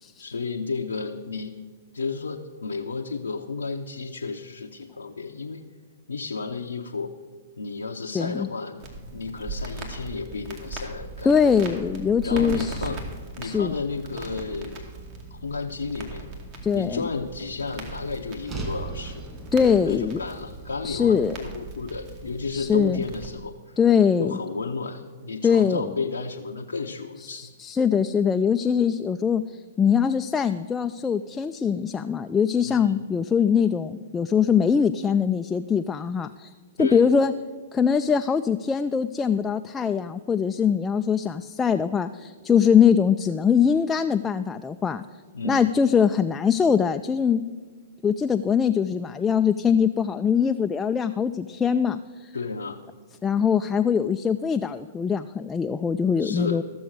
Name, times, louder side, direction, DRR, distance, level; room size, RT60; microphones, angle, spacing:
voice 1, 0.2-1.6 1.9-5.6 6.1-7.1 7.6-8.8 9.1-11.4 12.2-13.0 13.4-14.8 15.3-16.2 16.7-19.2 19.8-23.8 24.2-27.5 32.6-33.0 36.8-37.1 45.3-45.7 52.3-52.8 56.2-56.6, left 4 dB, 90° left, 1 dB, 0.7 m, -32 dB
voice 2, 8.1-8.5 11.3-12.8 13.4-13.7 16.6-17.0 19.5-20.2 20.8-21.4 22.5-23.0 23.8-24.4 25.4-25.9 27.2-36.5 36.8-37.3 37.7-45.0 45.4-47.4 48.0-52.3 53.2-56.6, left 7 dB, 15° left, 7 dB, 0.3 m, -22 dB
Crackle, 8.8-23.3, right 2 dB, 45° right, 2.5 m, -39 dB
sound 1, 18.5-22.7, right 3 dB, 20° right, 2.7 m, -39 dB
14.0 x 7.0 x 6.4 m, 1.5 s
hypercardioid pair, 120°, 0 cm